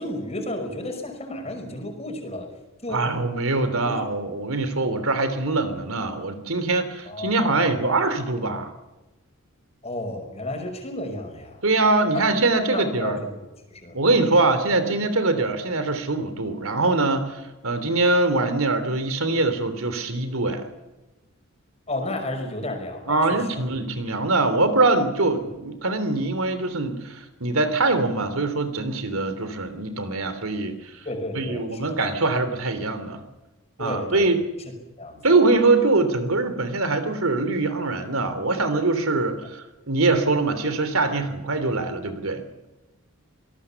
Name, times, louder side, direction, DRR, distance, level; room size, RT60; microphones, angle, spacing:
voice 1, 0.0-2.5 2.8-3.0 3.8-4.1 7.1-7.9 8.3-8.6 9.8-11.6 12.1-12.2 12.7-13.3 13.7-14.0 21.9-23.2 23.5-23.6 31.0-32.0 33.8-34.3 35.0-35.4, left 1 dB, 30° left, 4 dB, 5.6 m, -32 dB
voice 2, 2.9-8.7 11.6-13.2 13.9-20.6 23.1-31.0 31.3-33.2 33.8-34.4 35.2-42.4, right 3 dB, 80° right, 10 dB, 3.1 m, -23 dB
26.5 x 19.0 x 7.1 m, 1.1 s
head